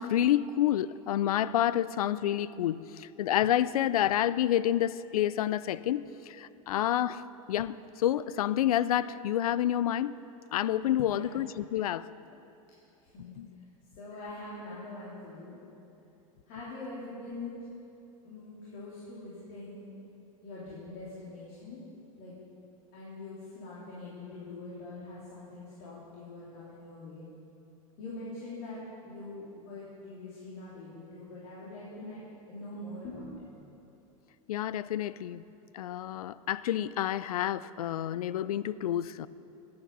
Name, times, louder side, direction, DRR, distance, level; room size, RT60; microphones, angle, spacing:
voice 1, 0.0-7.2 7.5-10.1 10.5-12.1 13.4-13.5 34.5-35.4 35.7-39.3, left 11 dB, 90° left, 18 dB, 0.4 m, -29 dB
voice 2, 10.9-11.4 13.0-13.3 14.0-15.6 16.5-17.5 18.2-19.9 20.4-21.8 22.2-22.3 22.9-27.3 28.0-32.2 32.5-33.5, left 2 dB, 55° left, -8 dB, 3.4 m, -43 dB
15.0 x 8.7 x 5.4 m, 2.9 s
supercardioid pair, 120°, 18 cm